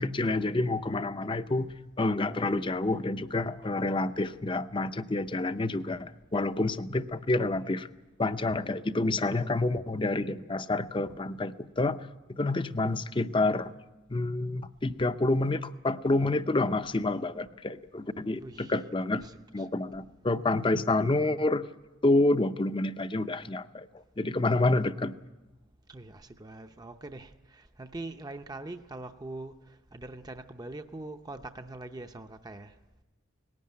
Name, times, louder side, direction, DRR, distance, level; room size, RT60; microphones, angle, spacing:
voice 1, 0.0-1.7 2.0-7.9 8.2-13.7 14.1-19.2 19.5-21.6 22.0-23.9 24.2-25.1, left 2 dB, 25° left, 11 dB, 0.6 m, -28 dB
voice 2, 18.4-18.9 19.2-19.7 25.9-32.7, right 2 dB, 20° right, 7 dB, 0.6 m, -43 dB
19.0 x 16.0 x 9.6 m, 1.1 s
head